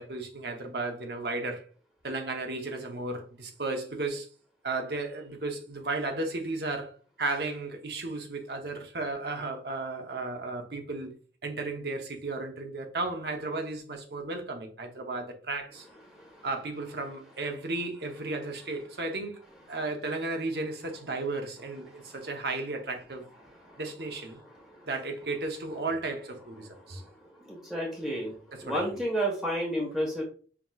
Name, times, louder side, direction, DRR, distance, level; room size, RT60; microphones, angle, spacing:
voice 1, 0.0-1.6 2.0-4.3 4.6-6.9 7.2-15.9 16.4-19.4 19.7-23.3 23.8-24.4 24.9-27.0 28.5-29.0, right 2 dB, 65° right, 0.9 m, -34 dB
voice 2, 16.1-16.5 23.6-23.8 24.7-24.9 26.9-27.1 27.4-28.4 28.6-30.2, right 1 dB, ahead, 1.2 m, -31 dB
5.8 x 2.9 x 2.4 m
head